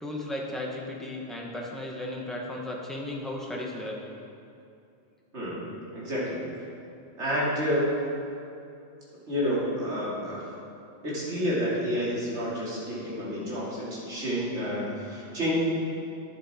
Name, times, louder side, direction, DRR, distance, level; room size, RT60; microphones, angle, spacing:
voice 1, 0.0-4.0, left 1 dB, ahead, -2 dB, 1.1 m, -35 dB
voice 2, 5.9-6.4 7.2-7.9 9.3-10.5 11.0-15.5, equal, 80° right, -7 dB, 3.0 m, -29 dB
11.0 x 9.5 x 4.3 m, 2.7 s
omnidirectional pair, 1.2 m